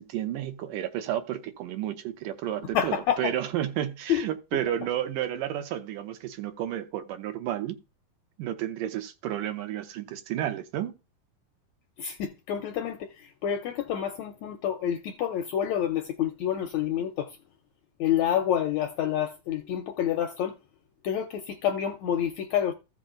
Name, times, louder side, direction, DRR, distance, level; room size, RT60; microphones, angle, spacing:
voice 1, 0.0-7.8 8.4-10.9, right 11 dB, 75° right, 2.4 m, -31 dB
voice 2, 2.7-3.3 4.1-4.2 12.0-17.3 18.0-20.5 21.0-22.7, left 10 dB, 75° left, 1.7 m, -28 dB
14.5 x 5.4 x 3.8 m
omnidirectional pair, 4.0 m